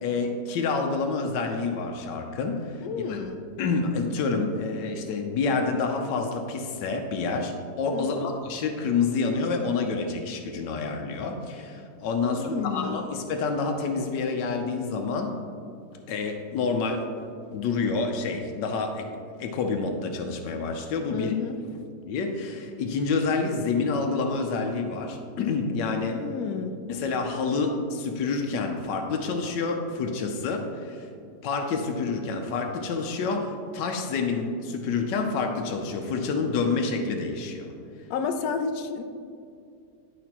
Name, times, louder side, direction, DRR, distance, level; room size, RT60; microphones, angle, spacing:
voice 1, 0.0-2.8 3.1-3.2 3.6-15.4 16.1-17.1 17.5-19.1 19.4-21.3 22.1-26.2 26.9-31.1 31.4-37.7, left 4 dB, 90° left, 4 dB, 1.3 m, -28 dB
voice 2, 2.8-3.5 7.9-8.3 12.2-13.0 21.1-21.6 26.1-26.8 38.1-39.0, left 6 dB, 70° left, 6 dB, 0.9 m, -31 dB
11.0 x 5.0 x 2.9 m, 2.4 s
omnidirectional pair, 1.8 m